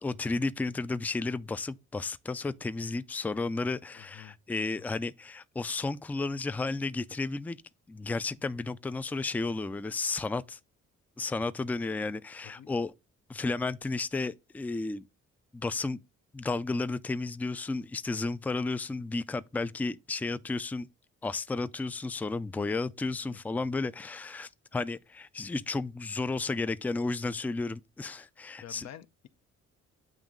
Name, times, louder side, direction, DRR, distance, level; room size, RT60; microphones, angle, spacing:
voice 1, 0.0-7.6 7.9-10.6 11.2-12.9 13.3-15.1 15.5-16.0 16.3-20.9 21.2-28.9, left 3 dB, 5° left, 0.3 m, -33 dB
voice 2, 3.9-4.4 12.4-12.7 22.5-22.7 23.3-23.6 28.2-28.3 28.6-29.3, left 11 dB, 65° left, 0.6 m, -49 dB
8.9 x 3.0 x 3.6 m
cardioid pair, 90°, 30 cm